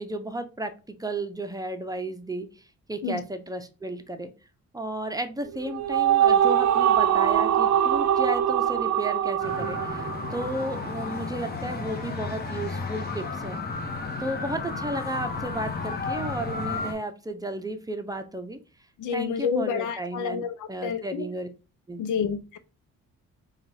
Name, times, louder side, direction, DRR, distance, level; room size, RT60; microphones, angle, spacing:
voice 1, 0.0-4.3 4.7-13.6 14.2-18.6 19.1-21.5 21.9-22.0, right 1 dB, 10° right, 0.6 m, -33 dB
sound 1, 5.5-11.0, right 10 dB, 65° right, 0.6 m, -23 dB
sound 2, 9.4-16.9, left 4 dB, 30° left, 1.1 m, -33 dB
voice 2, 19.0-21.3 22.0-22.6, left 6 dB, 80° left, 0.7 m, -29 dB
3.9 x 2.5 x 4.7 m
cardioid pair, 90°, 30 cm